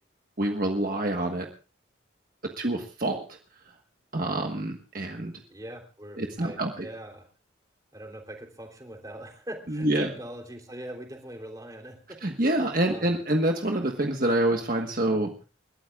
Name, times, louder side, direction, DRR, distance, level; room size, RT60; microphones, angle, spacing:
voice 1, 0.4-1.5 2.6-3.2 4.1-5.3 6.2-6.9 9.7-10.1 12.2-15.3, right 1 dB, 45° right, 3 dB, 1.4 m, -26 dB
voice 2, 5.4-7.3 7.9-12.2 12.9-13.1, right 1 dB, 20° right, 2 dB, 3.4 m, -42 dB
29.5 x 13.0 x 2.4 m, 0.34 s
head